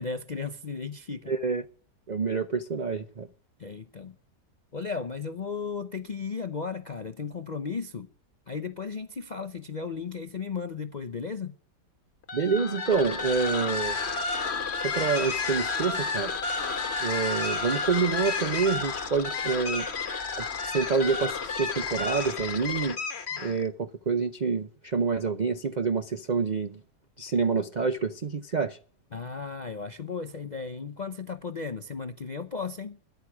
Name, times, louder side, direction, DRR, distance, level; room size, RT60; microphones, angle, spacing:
voice 1, 0.0-1.3 3.6-4.1 4.7-8.1 8.5-11.6 29.1-33.0, left 5 dB, 60° left, 0.4 m, -35 dB
voice 2, 1.3-1.6 2.1-3.3 12.3-14.0 14.8-16.3 17.0-19.9 20.3-23.0 23.4-26.8 27.2-28.8, right 5 dB, 85° right, 0.3 m, -27 dB
sound 1, 12.2-23.7, left 4 dB, 40° left, 1.4 m, -31 dB
13.0 x 10.5 x 6.1 m
omnidirectional pair, 1.8 m